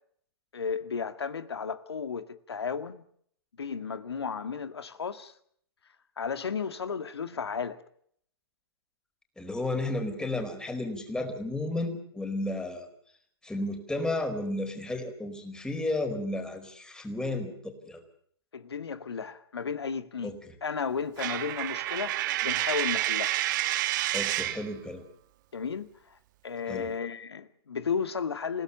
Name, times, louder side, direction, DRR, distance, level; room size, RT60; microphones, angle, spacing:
voice 1, 0.5-3.0 3.6-5.3 6.2-7.8 18.5-22.1 22.4-23.4 25.5-26.2 26.4-28.6, left 6 dB, 85° left, 2.0 m, -34 dB
voice 2, 9.4-12.9 13.4-18.0 20.2-20.5 24.1-25.0 26.7-26.9, left 2 dB, 5° left, 4.6 m, -33 dB
Coin (dropping), 21.2-24.7, right 15 dB, 50° right, 1.2 m, -29 dB
28.5 x 17.0 x 6.9 m
hypercardioid pair, 120°, 13 cm